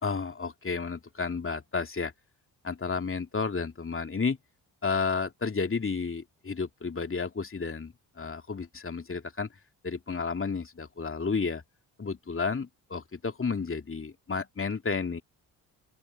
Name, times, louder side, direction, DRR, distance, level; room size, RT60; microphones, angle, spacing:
voice 1, 0.0-2.1 2.6-4.4 4.8-9.5 9.8-11.6 12.0-15.2, left 4 dB, 25° left, 2.9 m, -32 dB
open air
figure-of-eight pair, 40°, 49 cm